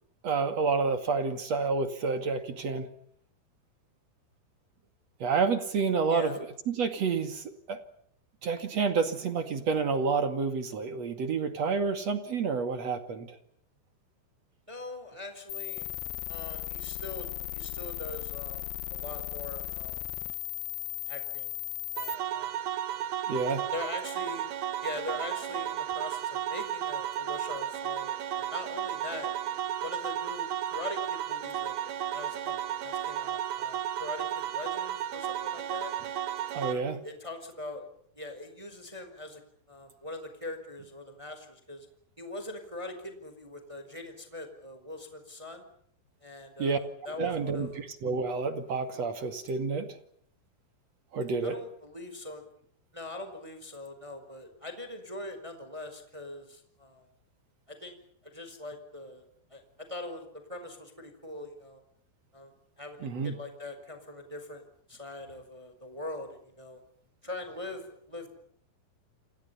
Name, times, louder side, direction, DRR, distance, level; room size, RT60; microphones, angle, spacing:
voice 1, 0.2-2.9 5.2-6.4 6.7-7.8 8.4-13.3 23.3-23.7 36.5-37.0 46.6-46.8 47.2-49.9 51.1-51.5 63.0-63.4, right 5 dB, 45° right, 8 dB, 2.4 m, -29 dB
voice 2, 6.1-6.4 14.7-15.9 16.3-20.0 21.1-21.5 21.9-22.5 23.7-24.5 24.8-29.3 29.8-35.9 36.7-37.9 38.1-39.4 39.7-41.9 42.2-45.6 46.2-47.8 51.4-52.4 52.9-57.1 57.7-59.2 59.5-61.8 62.3-66.8 67.2-68.4, left 2 dB, 5° right, 7 dB, 4.2 m, -42 dB
sound 1, 15.5-22.1, left 15 dB, 85° left, 4.0 m, -37 dB
sound 2, 22.0-36.7, right 11 dB, 90° right, 1.6 m, -33 dB
29.0 x 28.5 x 5.7 m, 0.65 s
omnidirectional pair, 5.8 m